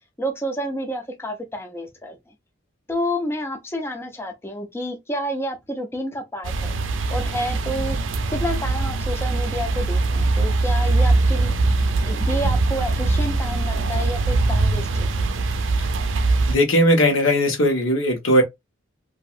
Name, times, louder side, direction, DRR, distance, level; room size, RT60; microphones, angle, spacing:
voice 1, 0.2-2.2 2.9-6.7 7.1-8.0 8.3-11.5 12.0-15.2, equal, 10° left, 0.4 m, -29 dB
sound 1, 6.4-16.6, right 3 dB, 65° right, 0.5 m, -22 dB
voice 2, 16.5-18.4, equal, 80° left, 1.1 m, -18 dB
3.0 x 2.6 x 2.4 m
head